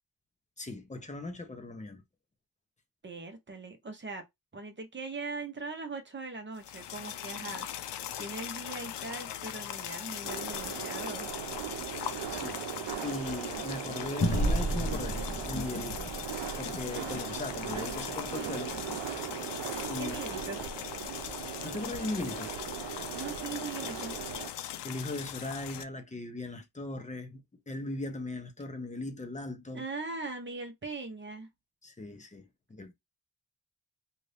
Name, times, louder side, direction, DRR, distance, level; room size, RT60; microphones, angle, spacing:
voice 1, 0.6-2.0 12.3-12.6 13.0-16.1 16.5-18.7 19.9-20.2 21.6-22.5 24.8-29.8 31.8-32.9, left 2 dB, 15° left, 0.7 m, -38 dB
voice 2, 3.0-4.2 4.5-7.7 8.2-11.3 16.8-17.2 20.0-20.6 23.1-24.1 29.7-31.5, right 3 dB, 25° right, 0.8 m, -40 dB
sound 1, 6.6-25.8, left 11 dB, 80° left, 0.5 m, -40 dB
sound 2, 10.2-24.5, right 9 dB, 85° right, 0.6 m, -39 dB
sound 3, 14.2-19.0, equal, 45° left, 0.9 m, -34 dB
2.7 x 2.5 x 3.3 m
wide cardioid pair, 140°, 41 cm